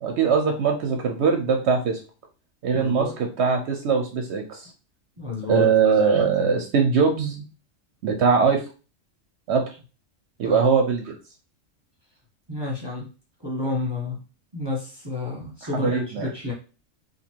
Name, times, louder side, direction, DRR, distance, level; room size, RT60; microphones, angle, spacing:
voice 1, 0.0-2.0 2.6-4.7 5.5-7.4 8.0-8.6 9.5-9.6 10.4-11.1 15.6-16.3, right 5 dB, 70° right, 4 dB, 0.8 m, -21 dB
voice 2, 2.7-3.1 5.2-5.7 10.4-10.6 12.5-13.1 13.4-14.1 14.5-16.5, left 2 dB, 25° right, -3 dB, 0.9 m, -29 dB
2.9 x 2.7 x 4.4 m, 0.34 s
omnidirectional pair, 1.3 m